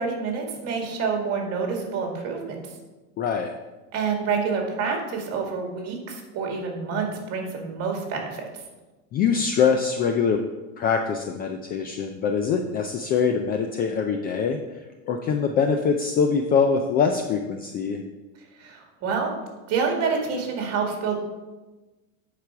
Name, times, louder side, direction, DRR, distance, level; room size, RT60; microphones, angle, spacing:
voice 1, 0.0-2.6 3.9-8.4 18.6-19.3 19.7-21.2, right 5 dB, 35° right, 1 dB, 2.1 m, -27 dB
voice 2, 3.2-3.5 9.1-10.4 10.8-14.6 15.0-18.0, left 6 dB, 25° left, 5 dB, 0.3 m, -23 dB
10.5 x 4.9 x 4.6 m, 1.2 s
supercardioid pair, 130°, 42 cm